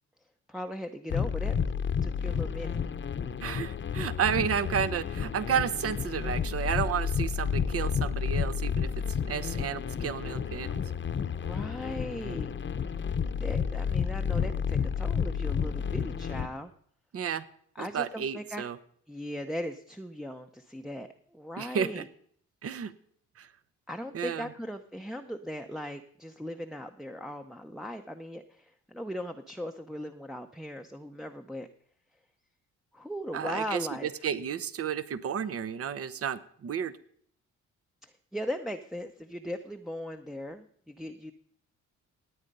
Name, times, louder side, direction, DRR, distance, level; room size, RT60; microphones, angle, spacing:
voice 1, 0.5-1.6 2.0-2.8 11.3-12.6 13.4-16.7 17.7-18.6 19.1-22.1 23.9-31.7 32.9-34.1 38.0-41.3, equal, ahead, 4 dB, 0.7 m, -38 dB
sound 1, 1.1-16.5, left 7 dB, 40° left, 0.9 m, -31 dB
voice 2, 3.4-8.9 9.3-10.8 17.1-17.4 17.8-18.8 21.6-22.0 22.6-22.9 23.4-23.5 24.1-24.5 33.3-33.8 34.2-36.9, right 8 dB, 50° right, 15 dB, 0.9 m, -32 dB
17.5 x 8.9 x 5.4 m, 0.63 s
cardioid pair, 90°, 30 cm